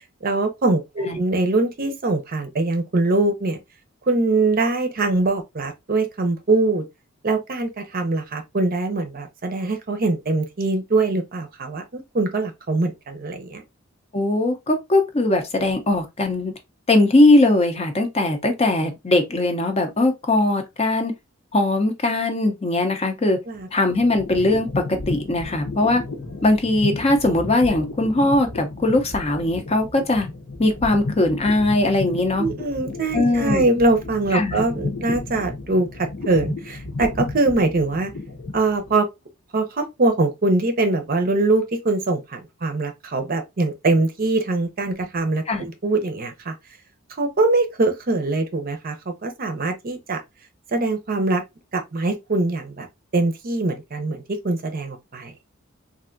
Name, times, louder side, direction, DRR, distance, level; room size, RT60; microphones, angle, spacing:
voice 1, 0.2-3.6 4.1-6.9 7.2-13.6 23.5-23.7 26.3-26.4 32.4-38.1 38.5-39.1 39.5-46.5 47.2-50.2 50.7-51.4 51.7-52.9 53.1-55.3, right 2 dB, 45° right, 0.6 m, -22 dB
voice 2, 14.1-16.5 16.9-21.1 21.5-23.4 23.7-26.0 26.4-30.3 30.6-32.5 33.1-33.6 34.3-34.6 45.5-45.6, left 2 dB, 30° left, 0.5 m, -20 dB
sound 1, 23.5-39.0, left 3 dB, 80° left, 0.9 m, -33 dB
3.3 x 2.5 x 2.5 m
head